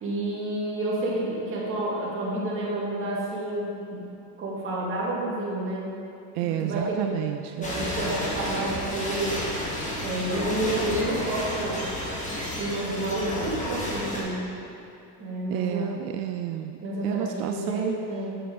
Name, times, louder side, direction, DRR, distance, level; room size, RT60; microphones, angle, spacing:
voice 1, 0.0-4.1 4.4-5.9 6.6-7.1 7.6-11.8 12.6-14.5 15.2-15.9 16.8-18.3, right 1 dB, 25° right, -5 dB, 1.9 m, -30 dB
voice 2, 6.3-7.7 15.5-16.8 17.0-18.0, right 12 dB, 75° right, 6 dB, 0.5 m, -30 dB
sound 1, 7.6-14.2, left 1 dB, 15° left, 1.4 m, -31 dB
8.7 x 7.1 x 3.7 m, 2.6 s
supercardioid pair, 150°, 46 cm